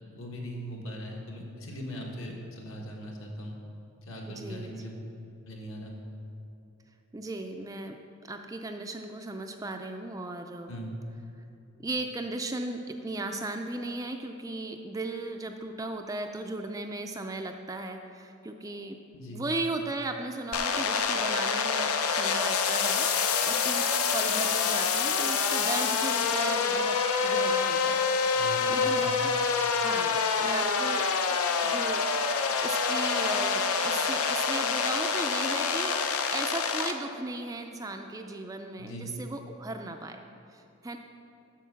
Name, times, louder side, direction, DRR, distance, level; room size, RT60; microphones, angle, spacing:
voice 1, 0.1-3.6 4.0-4.9 5.5-5.9 10.7-10.9 19.1-19.4 28.3-29.1 38.8-39.0, equal, 65° left, -1 dB, 1.7 m, -40 dB
voice 2, 4.3-4.8 7.1-8.0 8.3-10.7 11.8-19.0 19.3-23.9 24.1-29.3 29.8-31.0 31.6-36.0 36.3-40.2 40.5-41.0, right 2 dB, 15° right, 5 dB, 0.4 m, -36 dB
sound 1, 20.5-36.9, left 5 dB, 85° left, 0.7 m, -27 dB
8.4 x 6.5 x 6.9 m, 2.8 s
head